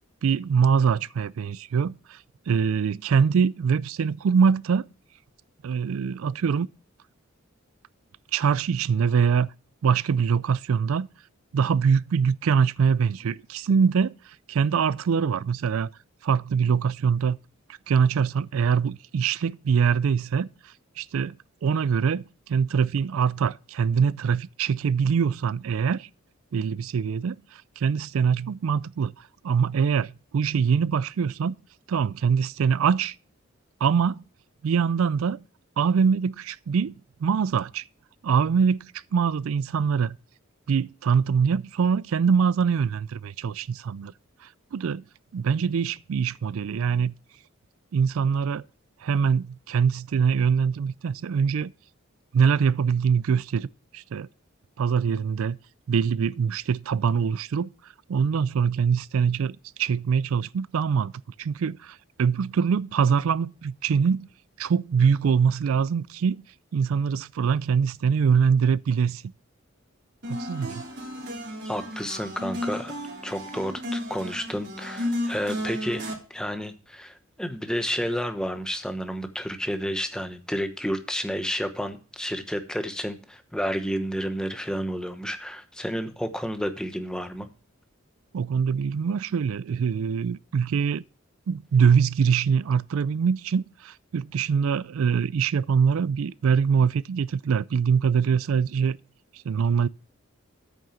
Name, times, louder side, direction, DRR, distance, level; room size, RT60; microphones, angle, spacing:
voice 1, 0.2-2.2 2.5-4.8 5.6-6.7 8.3-9.5 9.8-11.1 11.5-14.1 14.5-15.9 16.2-17.4 17.9-20.5 21.0-21.4 21.6-22.2 22.5-26.1 26.5-29.1 29.4-31.6 31.9-33.2 33.8-34.2 34.6-35.4 35.8-36.9 37.2-37.8 38.2-38.8 39.1-40.2 40.7-44.1 44.7-45.0 45.3-47.1 47.9-48.6 49.0-51.7 52.3-53.7 53.9-54.3 54.8-55.6 55.9-57.7 58.1-61.1 61.4-64.3 64.6-66.4 66.7-69.2 70.3-70.8 88.3-91.0 91.5-99.0 99.5-99.9, right 6 dB, 80° right, 0.4 m, -23 dB
sound 1, 70.2-76.1, left 1 dB, 50° right, 3.3 m, -33 dB
voice 2, 71.6-76.0 76.3-87.5, equal, 5° left, 0.9 m, -31 dB
8.9 x 6.4 x 5.7 m
head